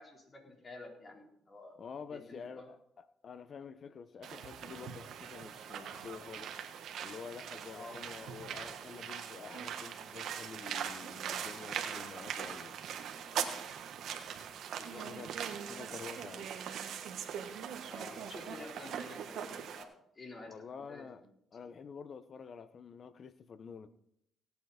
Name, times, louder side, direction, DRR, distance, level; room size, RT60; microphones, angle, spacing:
voice 1, 0.0-1.8 2.1-2.7 7.7-8.0 13.1-13.4 14.7-15.1 17.8-21.3, left 2 dB, 35° left, 4.3 m, -50 dB
voice 2, 1.8-6.6 7.0-12.7 15.1-16.5 20.5-21.2 21.5-23.9, left 6 dB, 50° left, 0.9 m, -48 dB
sound 1, 4.2-19.8, right 8 dB, 75° right, 1.4 m, -41 dB
17.0 x 9.4 x 4.4 m
cardioid pair, 90°, 0 cm